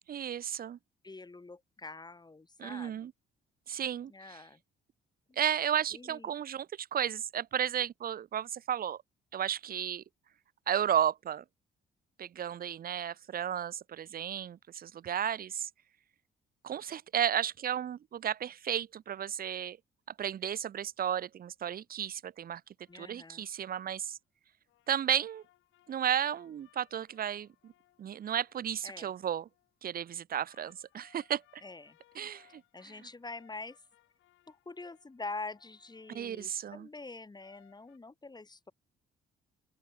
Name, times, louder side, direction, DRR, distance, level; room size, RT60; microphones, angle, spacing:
voice 1, 0.1-0.8 2.6-3.1 3.7-4.4 5.4-9.0 9.3-10.0 10.7-11.4 12.2-15.7 16.6-19.8 20.2-22.6 22.9-24.2 24.9-25.4 25.9-27.7 28.0-29.5 29.8-31.6 32.2-32.6 36.1-36.9, right 9 dB, 50° right, 0.7 m, -33 dB
voice 2, 1.0-3.1 4.1-4.6 5.3-5.4 5.9-6.3 22.9-23.4 28.8-29.1 31.6-32.0 32.7-33.8 34.5-38.7, left 3 dB, 20° left, 3.0 m, -45 dB
sound 1, 22.9-24.1 24.7-29.7 30.4-36.6 37.4-38.0, left 15 dB, 90° left, 3.0 m, -68 dB
open air
cardioid pair, 90°, 20 cm